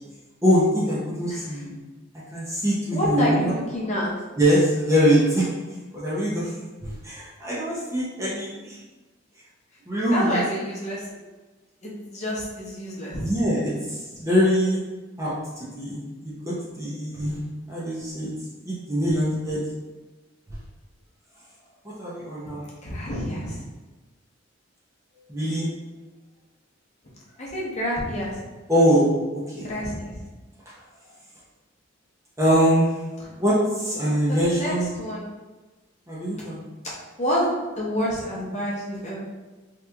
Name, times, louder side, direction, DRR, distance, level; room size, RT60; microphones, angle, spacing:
voice 1, 0.4-1.8 2.3-3.5 4.4-5.5 5.9-6.5 6.8-8.8 9.9-10.4 13.2-14.8 15.2-17.4 17.7-18.3 18.7-19.6 21.8-22.7 25.3-25.7 28.7-29.7 32.4-32.9 33.4-34.9 36.1-36.6, equal, 15° right, -7 dB, 0.5 m, -23 dB
voice 2, 1.3-1.6 2.9-4.1 10.1-11.2 11.8-13.3 22.8-23.6 27.4-28.4 29.6-30.2 34.3-35.3 37.2-39.2, equal, 35° left, -5 dB, 0.7 m, -28 dB
2.9 x 2.3 x 3.3 m, 1.2 s
head